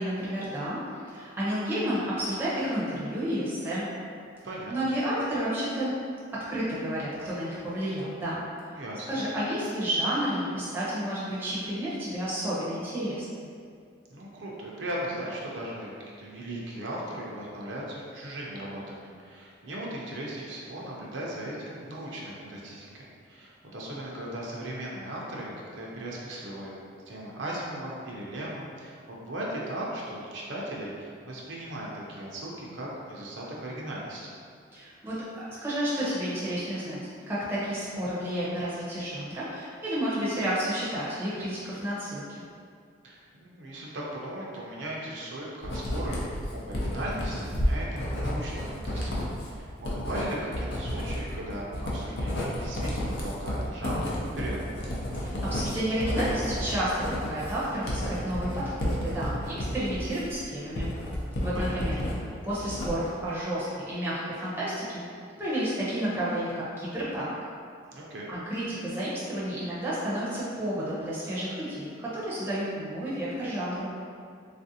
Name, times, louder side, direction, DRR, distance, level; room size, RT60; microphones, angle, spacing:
voice 1, 0.0-3.9 4.7-5.9 6.3-8.8 9.1-13.2 34.7-35.2 35.6-37.0 37.3-42.5 55.1-60.9 61.4-62.0 62.4-65.0 65.4-67.3 68.3-73.9, equal, 10° right, -9 dB, 0.6 m, -31 dB
voice 2, 8.8-9.2 14.1-15.9 16.2-26.7 27.1-34.3 43.0-54.6 61.5-61.8 67.9-68.3, right 1 dB, 70° right, -4 dB, 0.5 m, -37 dB
Writing, 45.6-62.2 62.5-63.2, equal, 60° left, 0.5 m, -31 dB
3.3 x 2.5 x 2.7 m, 2.2 s
head